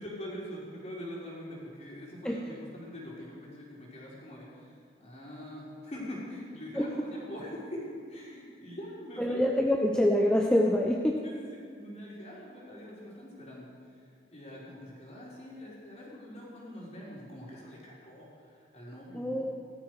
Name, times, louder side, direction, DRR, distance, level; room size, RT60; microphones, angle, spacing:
voice 1, 0.0-9.4 11.2-19.5, equal, 40° left, -5 dB, 4.4 m, -44 dB
voice 2, 9.2-11.2 19.1-19.5, left 1 dB, 5° left, 0 dB, 0.8 m, -25 dB
17.0 x 13.0 x 4.9 m, 2.2 s
head